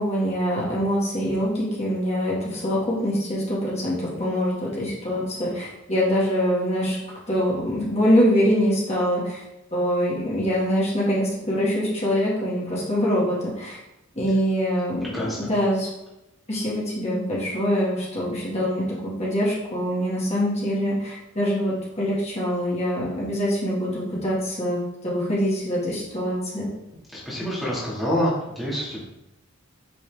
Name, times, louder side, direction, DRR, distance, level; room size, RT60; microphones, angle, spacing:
voice 1, 0.0-7.0 7.3-9.4 9.7-13.8 14.2-15.1 15.4-15.9 16.5-26.7, equal, 30° left, -7 dB, 2.0 m, -24 dB
voice 2, 15.1-15.5 27.3-29.0, equal, ahead, -9 dB, 2.1 m, -26 dB
8.8 x 4.3 x 3.5 m, 0.91 s
head